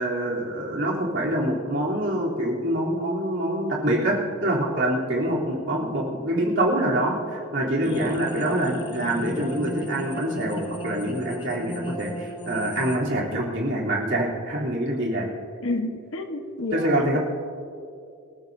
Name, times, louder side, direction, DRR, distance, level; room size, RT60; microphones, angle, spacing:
voice 1, 0.0-15.3 16.7-17.2, right 1 dB, 60° right, -4 dB, 3.3 m, -25 dB
sound 1, 7.8-13.0, equal, 20° left, 0.9 m, -35 dB
voice 2, 15.6-17.2, left 2 dB, 70° left, 5 dB, 1.2 m, -30 dB
27.0 x 13.5 x 2.7 m, 2.5 s
head